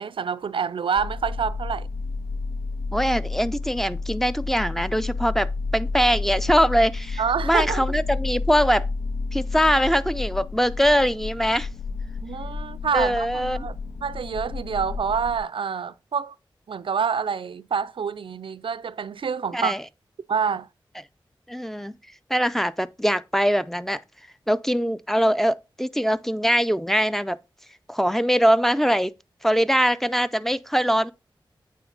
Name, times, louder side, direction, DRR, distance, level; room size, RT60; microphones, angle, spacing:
voice 1, 0.0-1.9 7.2-7.8 12.2-13.7 14.0-16.3 16.7-19.7 20.3-20.7, right 6 dB, 75° right, 0.4 m, -27 dB
sound 1, 1.0-15.4, left 3 dB, 90° left, 0.5 m, -31 dB
voice 2, 2.9-8.9 9.3-11.7 12.9-13.7 19.5-19.8 21.5-21.9 22.3-24.0 24.5-27.4 27.9-29.1 29.4-31.1, equal, 5° left, 0.5 m, -22 dB
9.1 x 3.6 x 3.9 m
wide cardioid pair, 55°, 9 cm